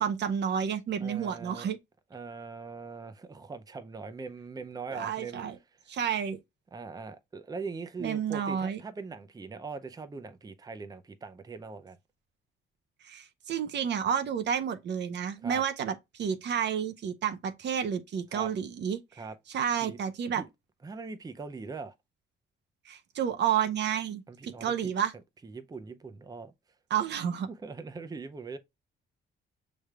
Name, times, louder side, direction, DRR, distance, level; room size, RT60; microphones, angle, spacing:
voice 1, 0.0-1.8 4.9-5.6 5.9-6.4 8.0-8.8 13.0-19.2 19.5-20.4 22.9-25.1 26.9-27.5, right 8 dB, 60° right, 0.7 m, -30 dB
voice 2, 1.0-1.7 2.1-5.4 6.7-12.0 15.4-15.6 18.3-18.5 19.2-19.4 19.8-20.0 20.3-20.5 20.8-21.9 24.3-24.9 25.4-26.5 27.5-28.6, right 4 dB, 20° right, 0.6 m, -41 dB
6.2 x 3.3 x 2.2 m
cardioid pair, 90°, 20 cm